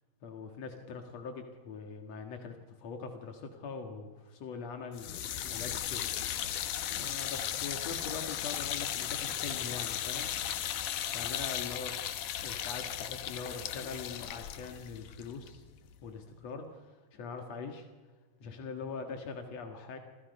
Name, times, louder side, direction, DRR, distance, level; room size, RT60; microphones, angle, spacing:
voice 1, 0.2-6.1 6.9-10.3 11.1-11.9 12.4-15.6 16.0-17.9 18.4-20.0, left 5 dB, 55° left, 4 dB, 1.9 m, -42 dB
sound 1, 4.9-16.0, left 11 dB, 75° left, 1.8 m, -36 dB
29.5 x 27.5 x 5.4 m, 1.3 s
omnidirectional pair, 5.4 m